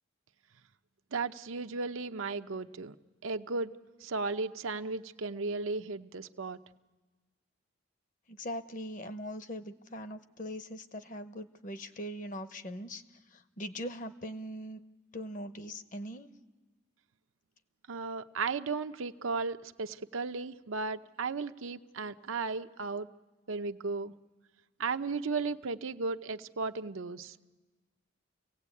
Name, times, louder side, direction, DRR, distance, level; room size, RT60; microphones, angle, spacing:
voice 1, 1.1-3.0 3.2-3.7 4.0-6.6 17.9-23.1 23.5-24.1 24.8-27.3, right 4 dB, 80° right, 9 dB, 0.7 m, -35 dB
voice 2, 8.3-13.0 13.3-14.8 15.1-16.3, equal, 40° left, 11 dB, 0.8 m, -41 dB
26.5 x 17.0 x 8.4 m, 1.3 s
head